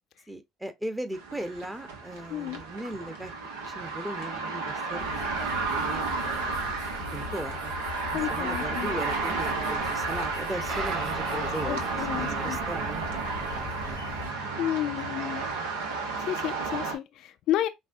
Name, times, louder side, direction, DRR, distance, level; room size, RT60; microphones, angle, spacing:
voice 1, 0.3-3.3 3.7-6.8 7.1-7.7 8.1-14.7, right 1 dB, 10° right, 0.9 m, -38 dB
sound 1, 1.1-17.0, right 4 dB, 75° right, 0.9 m, -32 dB
voice 2, 2.3-2.6 8.1-8.9 11.3-12.6 14.6-15.4 16.3-17.7, left 12 dB, 60° left, 0.4 m, -31 dB
sound 2, 5.0-14.3, left 5 dB, 90° left, 0.8 m, -41 dB
sound 3, 10.7-15.8, right 4 dB, 55° right, 2.5 m, -39 dB
5.3 x 2.2 x 2.6 m
hypercardioid pair, 60°, 0 cm